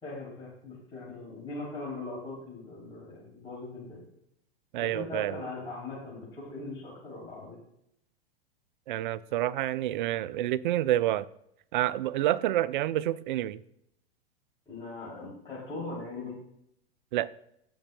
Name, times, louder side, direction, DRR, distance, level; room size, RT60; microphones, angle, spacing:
voice 1, 0.0-4.0 4.8-7.6 14.7-16.3, left 3 dB, 15° left, -8 dB, 3.2 m, -40 dB
voice 2, 4.7-5.4 8.9-11.3 11.7-13.6 17.1-17.3, right 13 dB, 55° right, 16 dB, 0.4 m, -28 dB
16.0 x 5.5 x 2.3 m, 0.76 s
figure-of-eight pair, 100°, 30 cm